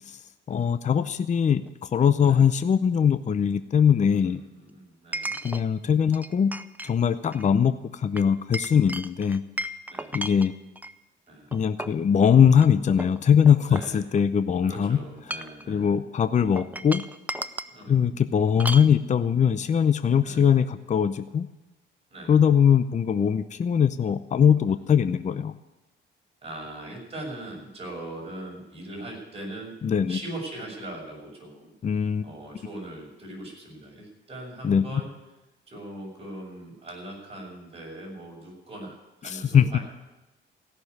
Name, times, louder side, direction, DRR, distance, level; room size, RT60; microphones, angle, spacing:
voice 1, 0.5-4.4 5.4-6.5 6.8-9.4 10.1-10.5 11.5-15.0 15.7-17.0 17.9-21.5 22.3-25.5 29.8-30.2 31.8-32.3 34.6-35.0 39.2-39.8, left 7 dB, 35° left, 12 dB, 0.6 m, -21 dB
Chink clink, 1.7-1.8 5.1-5.6 6.1-6.9 7.2-7.5 8.2-10.9 11.5-12.0 12.5-12.7 13.0-14.4 15.1-15.7 16.6-17.8 18.6-18.9, right 1 dB, 10° right, 0.6 m, -35 dB
voice 2, 4.2-5.4 7.2-7.3 9.9-10.1 11.3-11.5 13.7-14.0 14.6-15.9 17.7-18.1 20.2-20.4 22.1-22.3 24.7-25.2 26.4-29.7 30.1-31.7 32.2-35.1 35.7-39.8, right 1 dB, 30° right, -1 dB, 6.6 m, -40 dB
16.0 x 6.9 x 9.5 m, 1.0 s
cardioid pair, 90°, 20 cm